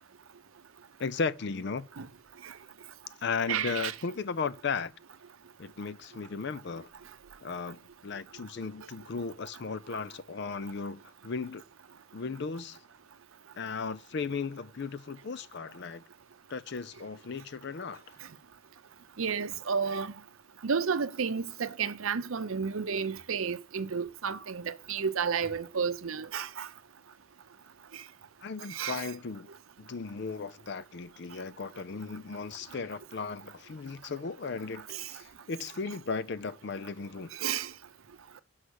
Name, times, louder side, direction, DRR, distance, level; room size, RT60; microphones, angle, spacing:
voice 1, 1.0-1.9 3.2-4.9 5.6-6.9 7.4-11.6 12.1-12.8 13.6-16.0 16.5-18.0 28.4-29.5 29.8-37.3, left 5 dB, 50° left, 0.5 m, -36 dB
voice 2, 3.5-3.9 19.2-20.1 20.6-26.7 27.9-28.0 28.7-29.1 34.9-35.1 37.3-37.7, right 6 dB, 75° right, 0.6 m, -32 dB
6.4 x 5.7 x 6.3 m
head